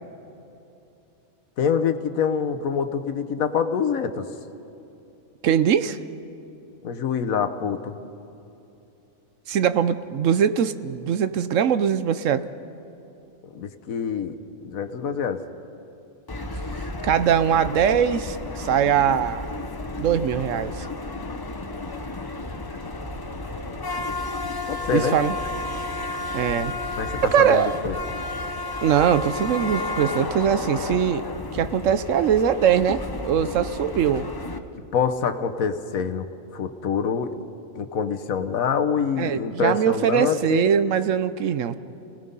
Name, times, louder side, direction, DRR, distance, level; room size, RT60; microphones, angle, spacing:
voice 1, 1.6-4.2 6.8-8.0 13.5-14.4 14.6-15.4 24.7-25.2 27.0-27.9 34.9-36.2 36.5-37.3 37.7-40.7, left 7 dB, 75° left, 8 dB, 1.4 m, -25 dB
voice 2, 5.4-6.0 9.5-12.5 17.0-19.5 20.0-20.9 24.9-25.3 26.3-26.7 27.3-27.7 28.8-31.2 31.5-34.3 39.2-41.8, right 8 dB, 70° right, 13 dB, 1.0 m, -21 dB
sound 1, 16.3-34.6, left 2 dB, 25° left, 0.5 m, -32 dB
29.5 x 18.0 x 5.4 m, 2.8 s
omnidirectional pair, 1.5 m